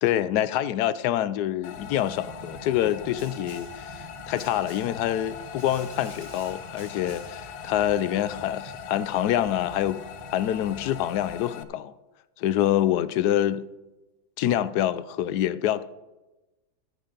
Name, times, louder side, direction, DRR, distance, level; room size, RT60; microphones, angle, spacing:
voice 1, 0.0-10.0 10.3-11.9 12.4-13.6 14.4-15.8, left 11 dB, 70° left, 1.0 m, -26 dB
sound 1, 1.6-11.6, left 9 dB, 90° left, 1.5 m, -41 dB
sound 2, 1.7-11.5, right 3 dB, 65° right, 0.4 m, -47 dB
Snare drum, 3.2-3.9 4.4-5.1 5.6-7.5, right 2 dB, 20° right, 1.6 m, -50 dB
13.0 x 9.9 x 3.9 m
omnidirectional pair, 2.1 m